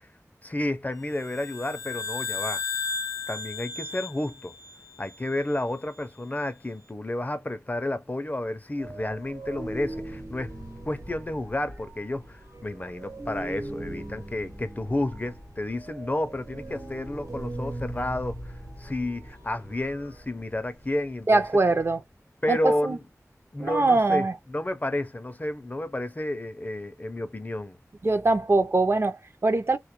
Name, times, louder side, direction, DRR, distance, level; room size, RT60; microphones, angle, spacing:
voice 1, 0.4-2.6 3.3-4.5 5.0-10.6 10.9-21.4 22.4-23.0 23.5-27.8, left 1 dB, 30° left, 0.4 m, -31 dB
sound 1, 1.1-5.6, left 5 dB, 85° left, 0.6 m, -35 dB
sound 2, 8.8-21.6, right 1 dB, 85° right, 1.0 m, -40 dB
voice 2, 21.3-22.0 22.5-23.0 23.6-24.3 28.0-29.8, right 2 dB, 45° right, 0.4 m, -22 dB
2.1 x 2.1 x 2.8 m
wide cardioid pair, 70°, 6 cm